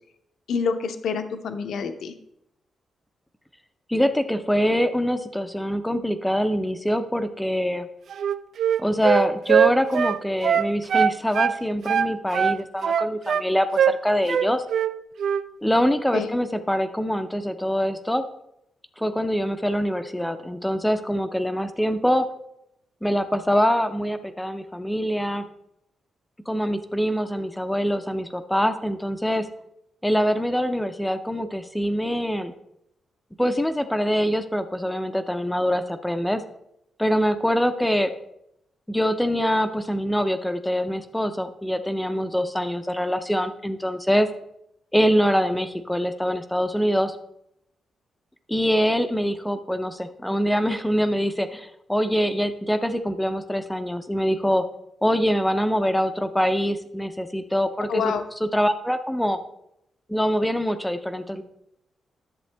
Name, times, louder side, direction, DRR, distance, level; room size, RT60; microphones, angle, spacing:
voice 1, 0.5-2.1 16.1-16.3 57.9-58.2, left 5 dB, 75° left, 8 dB, 0.7 m, -27 dB
voice 2, 3.9-7.9 8.8-14.6 15.6-18.3 19.0-22.3 23.0-25.4 26.5-29.5 30.0-32.5 33.4-36.4 37.0-38.1 38.9-44.3 44.9-47.2 48.5-54.7 55.0-58.1 58.4-59.4 60.1-61.4, equal, 5° left, 9 dB, 0.4 m, -24 dB
Wind instrument woodwind instrument, 8.1-11.6 11.8-13.5 13.8-14.0 14.3-14.9 15.2-15.4, right 8 dB, 65° right, 0.3 m, -21 dB
11.0 x 7.3 x 3.3 m, 0.79 s
wide cardioid pair, 160°, 0 cm